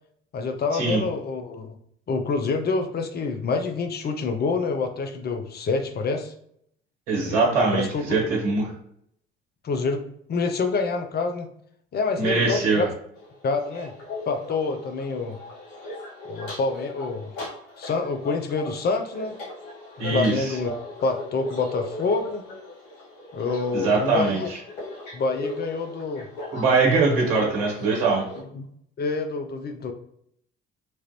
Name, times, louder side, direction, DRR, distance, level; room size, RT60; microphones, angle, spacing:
voice 1, 0.3-1.7 2.1-6.3 7.2-8.2 9.6-10.0 10.3-11.5 11.9-12.9 13.4-13.9 14.3-15.4 16.2-17.3 17.8-19.4 20.1-20.7 21.0-22.4 23.3-24.5 25.1-26.3 28.5-28.7 29.0-29.9, left 4 dB, 35° left, 6 dB, 0.5 m, -27 dB
voice 2, 7.1-8.7 12.2-12.8 20.0-20.6 23.7-24.6 26.5-28.2, right 3 dB, 75° right, -1 dB, 0.9 m, -22 dB
sound 1, 13.1-28.4, left 1 dB, 70° left, 1.1 m, -38 dB
3.0 x 2.4 x 2.9 m, 0.69 s
hypercardioid pair, 55°, 29 cm